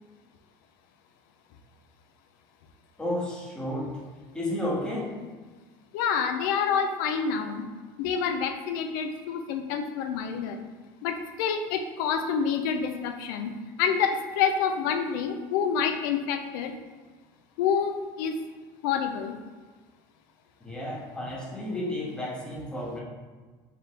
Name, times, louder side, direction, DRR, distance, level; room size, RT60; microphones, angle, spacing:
voice 1, 3.0-4.0 4.3-5.2 20.6-23.0, left 1 dB, 10° left, -4 dB, 0.8 m, -32 dB
voice 2, 5.9-7.6 8.0-10.6 11.0-13.5 13.8-16.7 17.6-18.3 18.8-19.3, left 6 dB, 85° left, 6 dB, 0.4 m, -27 dB
3.6 x 3.4 x 2.8 m, 1.4 s
cardioid pair, 140°, 11 cm